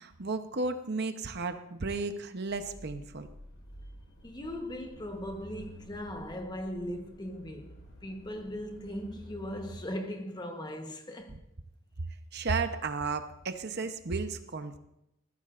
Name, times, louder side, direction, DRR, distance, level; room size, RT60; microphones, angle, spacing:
voice 1, 0.0-3.3 12.3-14.8, right 4 dB, 50° right, 0.8 m, -33 dB
sound 1, 2.5-9.8, equal, 60° left, 2.2 m, -51 dB
voice 2, 4.2-7.8 8.0-11.4, equal, 20° left, 1.0 m, -39 dB
20.5 x 14.5 x 2.5 m
head